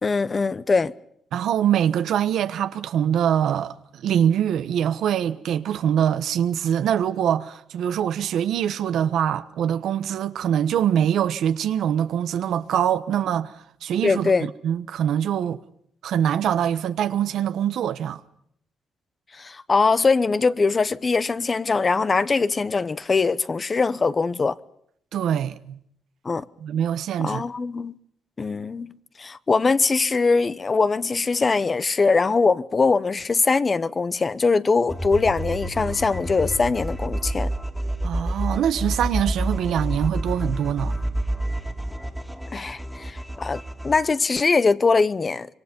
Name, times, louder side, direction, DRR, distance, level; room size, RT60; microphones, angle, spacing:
voice 1, 0.0-0.9 14.0-14.5 19.4-24.5 26.2-26.4 27.2-27.9 28.4-28.9 29.2-37.5 42.5-45.5, left 4 dB, 30° left, 0.9 m, -22 dB
voice 2, 1.3-14.3 14.6-15.6 16.0-18.2 25.1-25.8 26.6-27.4 38.0-40.9, right 9 dB, 75° right, 1.1 m, -24 dB
sound 1, 34.9-44.0, right 1 dB, 5° left, 2.4 m, -29 dB
26.0 x 23.5 x 5.3 m
cardioid pair, 95°, 0 cm